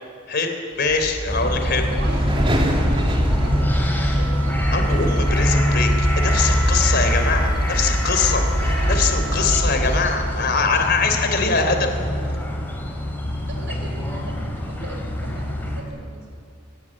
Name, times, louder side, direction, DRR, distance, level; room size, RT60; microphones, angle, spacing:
voice 1, 0.3-1.8 4.7-11.9, left 4 dB, 50° left, 5 dB, 3.5 m, -23 dB
sound 1, 0.8-10.0, equal, 25° right, 2.9 m, -24 dB
sound 2, 1.3-15.8, equal, 10° left, 3.8 m, -24 dB
voice 2, 1.6-4.3 13.5-16.4, right 1 dB, 60° right, 1 dB, 6.4 m, -38 dB
Wind instrument woodwind instrument, 2.6-10.6, right 2 dB, 85° right, 1.1 m, -35 dB
23.0 x 20.0 x 8.9 m, 2.3 s
head